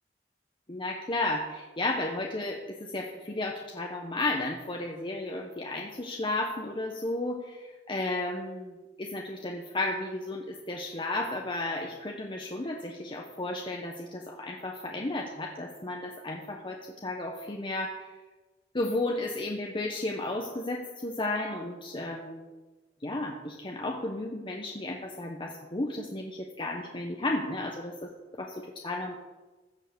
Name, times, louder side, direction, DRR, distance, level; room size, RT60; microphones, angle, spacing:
voice 1, 0.7-18.1 18.7-22.4 23.0-28.1 28.4-29.1, left 2 dB, 25° left, 1 dB, 0.9 m, -33 dB
15.0 x 5.5 x 6.7 m, 1.3 s
head